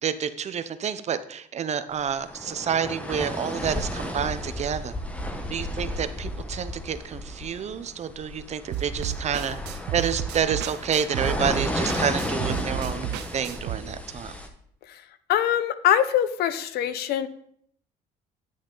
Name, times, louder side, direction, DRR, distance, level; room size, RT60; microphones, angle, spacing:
voice 1, 0.0-4.9 5.5-9.6 9.9-13.1 13.3-14.4, right 8 dB, 40° right, 12 dB, 0.6 m, -29 dB
sound 1, 2.0-14.5, left 1 dB, 10° left, 1.1 m, -33 dB
sound 2, 8.7-13.8, right 11 dB, 85° right, 0.5 m, -33 dB
voice 2, 15.3-17.3, left 10 dB, 75° left, 13 dB, 0.7 m, -23 dB
10.0 x 6.3 x 3.8 m, 0.67 s
cardioid pair, 110°, 17 cm